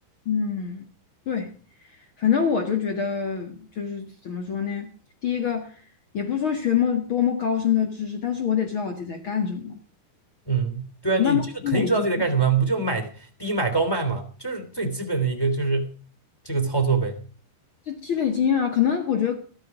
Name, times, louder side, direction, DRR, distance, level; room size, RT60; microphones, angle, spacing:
voice 1, 0.2-0.8 1.2-1.5 2.2-4.9 5.2-5.7 6.1-9.7 11.2-12.1 17.9-19.3, left 8 dB, 85° left, 5 dB, 1.1 m, -25 dB
voice 2, 10.5-11.5 11.7-13.1 13.4-15.9 16.4-17.2, right 4 dB, 10° left, 7 dB, 1.8 m, -24 dB
14.5 x 14.0 x 4.9 m, 0.39 s
omnidirectional pair, 5.4 m